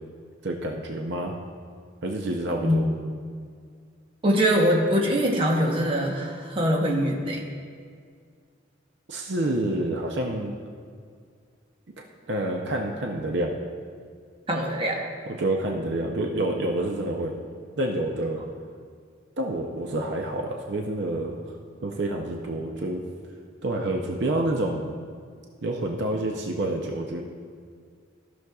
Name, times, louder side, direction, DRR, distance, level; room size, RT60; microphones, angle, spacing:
voice 1, 0.4-1.3 2.0-2.9 9.1-10.5 12.0-13.5 15.3-17.3 17.8-18.4 19.4-21.4 21.8-23.0 23.6-24.9 25.6-27.2, right 1 dB, 55° right, 1 dB, 0.6 m, -28 dB
voice 2, 2.6-2.9 4.2-7.4 14.5-15.0, equal, 25° right, -1 dB, 0.9 m, -23 dB
15.0 x 6.3 x 2.3 m, 2.1 s
head